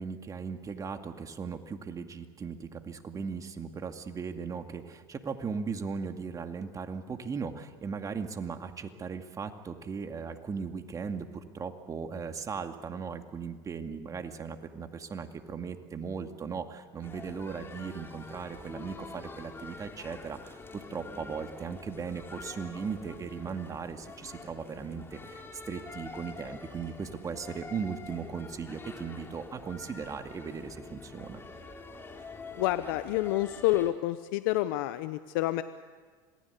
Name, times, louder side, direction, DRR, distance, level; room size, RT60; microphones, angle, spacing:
voice 1, 0.0-31.4, right 5 dB, 30° right, 6 dB, 2.3 m, -38 dB
sound 1, 17.0-33.9, left 3 dB, 20° left, 3.3 m, -46 dB
voice 2, 32.6-35.6, left 16 dB, 75° left, 12 dB, 0.9 m, -28 dB
27.0 x 20.0 x 8.4 m, 1.5 s
supercardioid pair, 95°, 11 cm